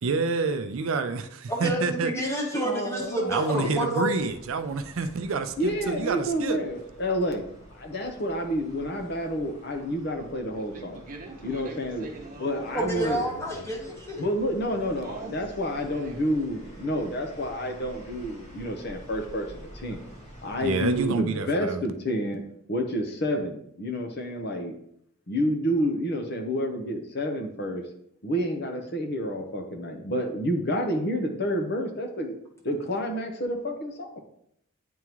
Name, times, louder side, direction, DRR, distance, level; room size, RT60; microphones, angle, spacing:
voice 1, 0.0-2.1 3.3-6.6 20.6-21.8, right 4 dB, 70° right, 9 dB, 0.4 m, -28 dB
voice 2, 1.5-4.1 12.7-14.3, right 1 dB, 15° left, -1 dB, 1.1 m, -29 dB
voice 3, 2.5-3.8 5.6-7.4 7.7-11.0 11.4-12.1 12.4-13.3 14.2-20.0 20.4-22.4 22.7-24.7 25.3-27.8 28.2-32.4 32.6-34.2, equal, 50° left, 3 dB, 0.8 m, -29 dB
sound 1, 4.1-21.1, right 1 dB, 30° left, 1.4 m, -48 dB
voice 4, 10.5-12.8 15.0-15.5 15.9-16.4, right 2 dB, 40° right, 2 dB, 0.8 m, -43 dB
9.3 x 3.6 x 3.0 m, 0.72 s
head